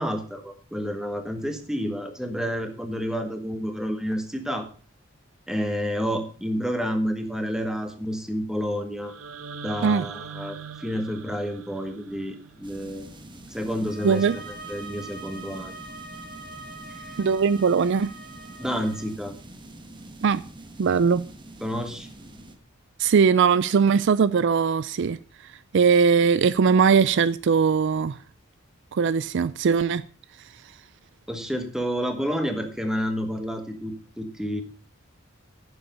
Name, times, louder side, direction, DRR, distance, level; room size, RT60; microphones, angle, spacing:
voice 1, 0.0-4.7 5.5-9.1 9.6-13.1 13.5-15.8 18.6-19.3 21.6-22.1 31.3-34.6, equal, 5° right, 1.5 m, -29 dB
sound 1, 9.0-13.1, right 6 dB, 85° right, 0.9 m, -41 dB
sound 2, 12.6-22.6, right 1 dB, 25° right, 1.3 m, -45 dB
sound 3, 13.8-19.1, right 2 dB, 45° right, 3.6 m, -43 dB
voice 2, 14.0-14.4 17.2-18.1 20.2-20.4 20.8-21.2 23.0-28.2 28.9-30.0, right 6 dB, 60° right, 0.4 m, -20 dB
10.0 x 7.1 x 6.7 m
head